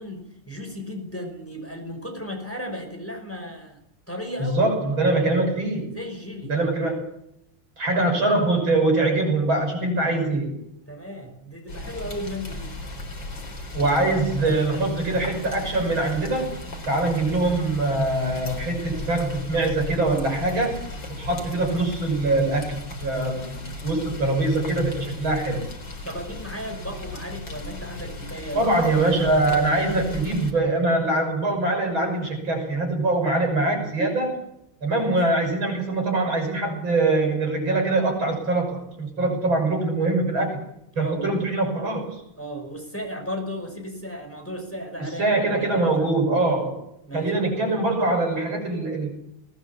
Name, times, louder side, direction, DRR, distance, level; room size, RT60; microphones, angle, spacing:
voice 1, 0.0-3.8 4.1-4.7 5.9-6.6 10.9-12.7 26.0-29.2 35.0-35.2 40.9-41.3 42.4-46.1 47.1-47.3, equal, 5° left, 4 dB, 5.4 m, -35 dB
voice 2, 4.4-6.0 6.5-7.1 7.8-10.5 13.7-16.5 16.9-20.8 21.1-25.6 28.5-34.3 34.8-40.6 41.0-42.2 45.0-46.8 47.1-49.1, right 2 dB, 75° right, 3 dB, 7.1 m, -23 dB
Rain, 11.7-30.5, left 2 dB, 65° left, 4.8 m, -36 dB
20.5 x 19.5 x 7.3 m, 0.79 s
omnidirectional pair, 2.2 m